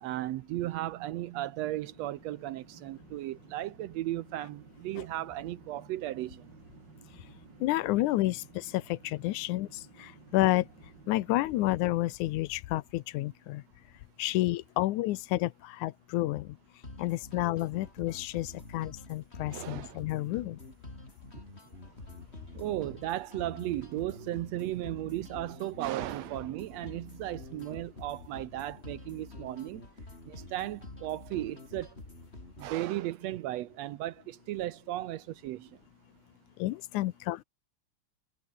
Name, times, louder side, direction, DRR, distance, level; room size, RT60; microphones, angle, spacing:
voice 1, 0.0-6.4 19.5-20.0 22.5-29.8 30.3-31.9 32.6-35.7, right 15 dB, 75° right, 1.7 m, -35 dB
sound 1, 1.6-12.2, right 4 dB, 35° right, 3.6 m, -55 dB
voice 2, 7.6-9.7 10.0-10.7 11.1-13.6 14.2-16.5 17.0-20.6 36.6-37.4, left 17 dB, 90° left, 2.2 m, -30 dB
sound 2, 16.8-32.8, left 2 dB, 20° left, 4.3 m, -47 dB
omnidirectional pair, 3.4 m